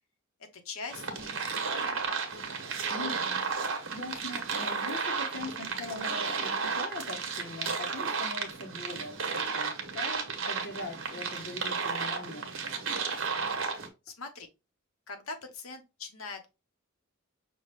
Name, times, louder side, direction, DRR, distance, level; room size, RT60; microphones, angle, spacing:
voice 1, 0.6-2.6 13.7-14.5 15.1-16.5, left 4 dB, 85° left, 1.0 m, -43 dB
sound 1, 0.9-13.9, right 5 dB, 70° right, 1.0 m, -33 dB
voice 2, 2.9-12.5, left 2 dB, 55° left, 0.9 m, -41 dB
5.9 x 2.3 x 3.2 m
head